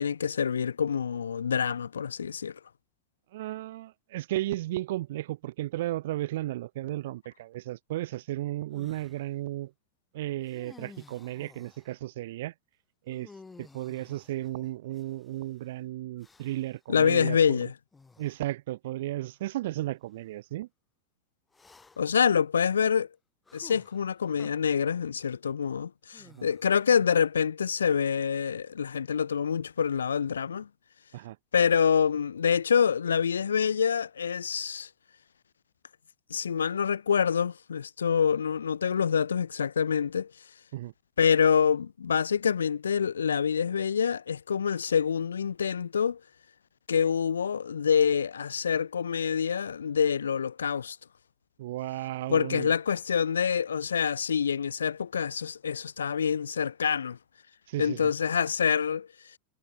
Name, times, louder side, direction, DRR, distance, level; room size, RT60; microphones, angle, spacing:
voice 1, 0.0-2.6 16.9-17.7 22.0-23.1 23.5-30.7 31.5-34.9 36.3-40.3 41.2-46.2 46.9-51.0 52.3-57.2 57.8-59.1, left 7 dB, 70° left, 1.0 m, -26 dB
voice 2, 3.3-9.7 10.1-12.5 13.1-13.3 13.6-17.7 18.2-20.7 26.2-26.5 31.1-31.4 40.7-40.9 51.6-52.7 57.7-58.1, right 15 dB, 55° right, 2.6 m, -34 dB
sound 1, 8.7-9.2 10.4-12.0 13.1-15.4 16.2-16.8 17.9-18.4 19.3-19.4 21.5-22.2 23.5-24.5 26.1-26.9, left 4 dB, 10° left, 7.4 m, -54 dB
figure-of-eight pair, 90°, 0 cm